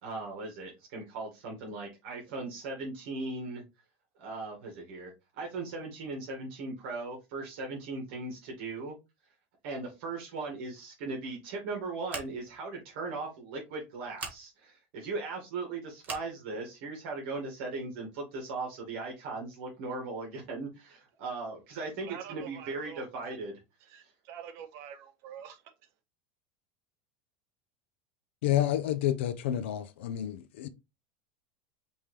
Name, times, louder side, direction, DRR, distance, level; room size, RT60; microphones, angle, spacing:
voice 1, 0.0-3.6 4.2-9.0 9.6-23.5 24.0-24.1, right 3 dB, 70° right, 2.0 m, -38 dB
Scissors, 12.1-12.6 14.1-14.4 16.0-16.3, right 5 dB, 25° right, 1.3 m, -40 dB
voice 2, 22.0-23.4 23.8-25.7, right 9 dB, 50° right, 1.0 m, -46 dB
voice 3, 28.4-30.7, left 12 dB, 90° left, 0.6 m, -29 dB
5.4 x 3.0 x 3.3 m
supercardioid pair, 145°, 6 cm